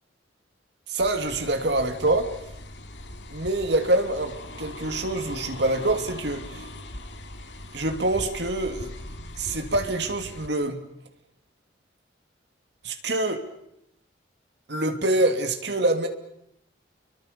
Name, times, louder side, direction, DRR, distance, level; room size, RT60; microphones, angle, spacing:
voice 1, 0.9-2.3 3.3-4.3 4.6-6.6 7.7-8.9 9.4-10.8 12.8-13.4 14.7-16.1, right 2 dB, 65° right, 5 dB, 3.0 m, -25 dB
sound 1, 1.0-10.5, left 1 dB, 70° left, 2.4 m, -40 dB
30.0 x 23.5 x 7.1 m, 0.78 s
head